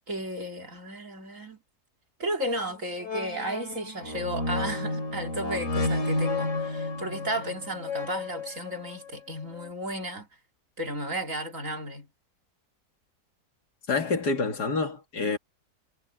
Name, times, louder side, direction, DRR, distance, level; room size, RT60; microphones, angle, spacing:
voice 1, 0.1-1.6 2.2-10.3 10.8-12.1, right 1 dB, 50° right, 3.7 m, -34 dB
sound 1, 2.6-2.7 3.0-8.9 9.6-9.7, left 2 dB, 50° left, 3.1 m, -31 dB
voice 2, 13.9-15.4, left 4 dB, 80° left, 2.8 m, -27 dB
omnidirectional pair, 1.7 m